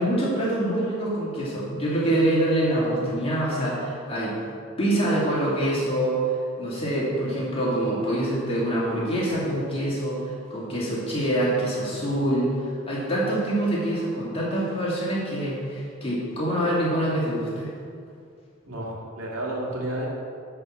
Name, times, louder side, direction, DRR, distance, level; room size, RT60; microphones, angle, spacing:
voice 1, 0.0-4.4 4.8-6.2 6.6-10.2 10.5-12.5 12.9-17.7, right 1 dB, 25° left, -6 dB, 2.4 m, -25 dB
voice 2, 18.7-20.1, right 1 dB, 75° right, -4 dB, 2.3 m, -31 dB
11.0 x 4.7 x 7.2 m, 2.4 s
head